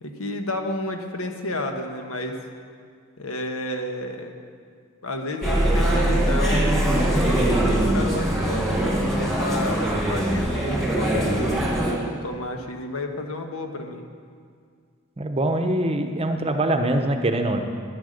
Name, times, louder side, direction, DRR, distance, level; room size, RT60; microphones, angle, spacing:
voice 1, 0.0-2.4 3.2-4.3 5.0-14.0, left 1 dB, 75° left, 4 dB, 1.2 m, -32 dB
sound 1, 5.4-11.9, right 1 dB, ahead, 2.0 m, -22 dB
voice 2, 15.2-17.6, right 1 dB, 25° right, 5 dB, 0.8 m, -23 dB
10.5 x 10.5 x 6.5 m, 2.1 s
head